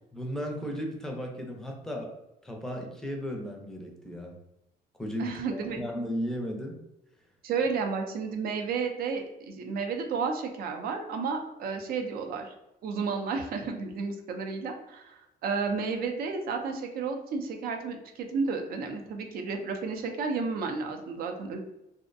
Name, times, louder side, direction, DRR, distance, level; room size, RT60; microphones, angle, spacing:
voice 1, 0.1-2.1 2.4-4.3 5.0-6.8, equal, 5° left, 1 dB, 0.5 m, -35 dB
voice 2, 5.2-5.8 7.4-12.5 12.8-21.6, right 5 dB, 60° right, 4 dB, 0.5 m, -32 dB
2.5 x 2.1 x 2.5 m, 0.90 s
cardioid pair, 110°, 17 cm